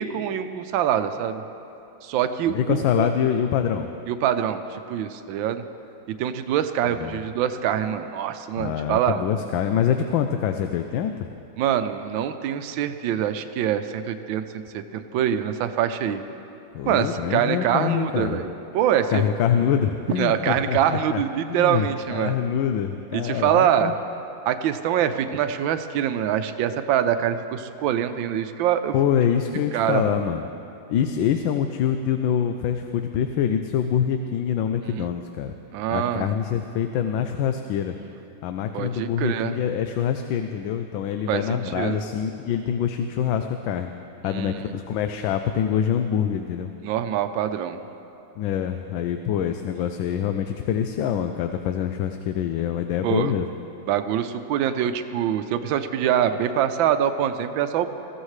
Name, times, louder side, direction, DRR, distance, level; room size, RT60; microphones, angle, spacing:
voice 1, 0.0-1.4 2.0-3.1 4.1-5.6 6.2-9.2 11.6-16.2 16.9-19.2 20.2-22.3 23.1-23.9 24.5-28.9 29.7-30.3 34.9-35.1 35.7-36.3 38.7-39.5 41.3-42.0 44.2-44.7 46.8-47.8 53.0-53.3 53.9-58.0, right 10 dB, 80° right, 9 dB, 1.4 m, -24 dB
voice 2, 2.5-3.9 7.0-7.2 8.6-11.1 16.7-18.4 19.1-21.2 21.5-23.9 28.9-30.5 30.9-35.5 35.9-38.0 38.4-43.9 44.2-46.7 48.4-53.5, left 9 dB, 80° left, 7 dB, 1.3 m, -25 dB
22.0 x 15.0 x 3.2 m, 2.9 s
omnidirectional pair, 2.1 m